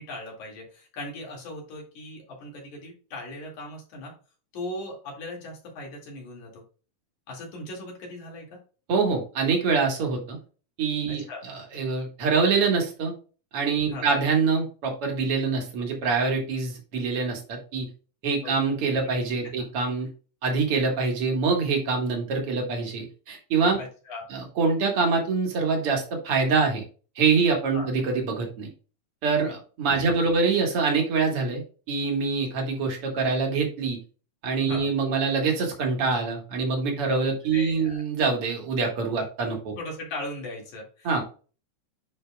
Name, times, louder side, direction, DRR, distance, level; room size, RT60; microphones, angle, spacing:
voice 1, 0.0-4.1 4.5-6.6 7.3-8.6 11.1-11.4 13.9-14.1 18.4-18.5 19.0-19.1 19.4-19.5 23.8-24.2 27.7-27.9 29.9-30.3 34.7-34.9 37.5-38.0 39.8-41.2, left 1 dB, 80° left, -1 dB, 3.6 m, -38 dB
voice 2, 8.9-10.4 10.8-13.1 13.5-17.9 18.2-20.1 20.4-23.8 24.3-26.8 27.2-28.7 29.2-31.6 31.9-34.0 34.4-39.8 41.0-41.2, right 4 dB, 55° right, 2 dB, 2.2 m, -25 dB
10.0 x 4.4 x 2.3 m, 0.37 s
omnidirectional pair, 3.4 m